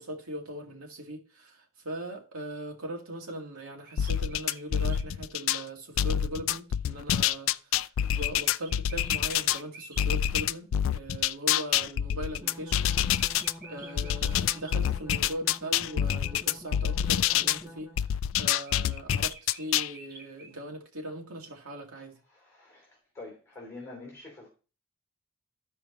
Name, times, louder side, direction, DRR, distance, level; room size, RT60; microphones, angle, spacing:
voice 1, 0.0-12.9 13.6-17.9 18.4-22.2, right 1 dB, 80° right, 2.0 m, -40 dB
sound 1, 3.6-5.1 8.1-10.1 12.9-14.8 18.4-20.6, right 3 dB, 45° right, 1.4 m, -49 dB
sound 2, 4.0-5.6 6.0-9.6 10.0-13.5 14.0-17.6 18.0-19.9, left 10 dB, 60° left, 0.3 m, -27 dB
sound 3, 12.4-18.1, equal, 10° right, 1.0 m, -47 dB
voice 2, 22.3-24.5, left 2 dB, 15° left, 3.0 m, -46 dB
13.0 x 4.9 x 4.2 m
head